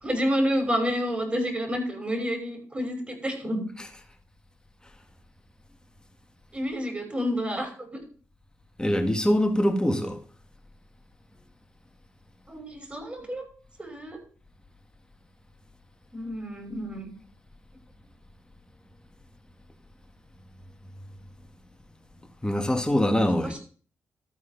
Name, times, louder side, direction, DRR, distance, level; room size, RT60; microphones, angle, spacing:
voice 1, 0.0-3.6 6.5-8.0 12.5-13.4 13.8-14.2 16.1-17.1, equal, 20° right, 5.5 m, -29 dB
voice 2, 8.8-10.2 22.4-23.6, equal, 15° left, 1.7 m, -23 dB
13.5 x 4.8 x 5.8 m
supercardioid pair, 50°, 6 cm